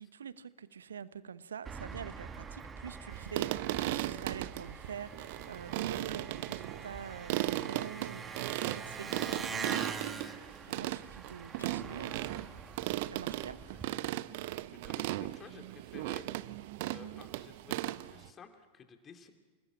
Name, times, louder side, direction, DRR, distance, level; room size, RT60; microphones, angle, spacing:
voice 1, 0.0-12.5 12.9-13.8, right 7 dB, 70° right, 16 dB, 1.0 m, -46 dB
Engine, 1.6-13.9, right 5 dB, 20° right, 1.7 m, -44 dB
sound 1, 3.1-18.3, right 16 dB, 50° right, 0.7 m, -37 dB
sound 2, 3.8-8.1 11.6-15.4, left 9 dB, 80° left, 3.3 m, -61 dB
voice 2, 14.7-19.3, left 6 dB, 25° left, 6 dB, 2.6 m, -54 dB
28.5 x 19.5 x 8.8 m, 1.4 s
figure-of-eight pair, 90°, 0 cm